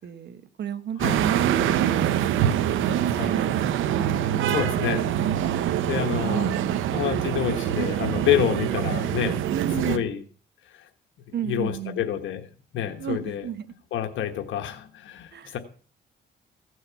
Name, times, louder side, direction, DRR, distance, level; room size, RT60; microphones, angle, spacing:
voice 1, 0.0-2.4 2.8-4.1 5.4-7.0 7.4-7.5 9.5-10.2 11.3-12.1 13.0-13.7 15.3-15.6, right 9 dB, 60° right, 11 dB, 1.2 m, -32 dB
sound 1, 1.0-10.0, right 10 dB, 85° right, 0.8 m, -25 dB
voice 2, 4.5-5.1 5.9-6.5 6.9-9.4 9.8-10.2 11.4-13.4 13.9-15.6, left 11 dB, 75° left, 6 dB, 1.3 m, -28 dB
16.0 x 6.5 x 6.9 m, 0.43 s
cardioid pair, 90°, 20 cm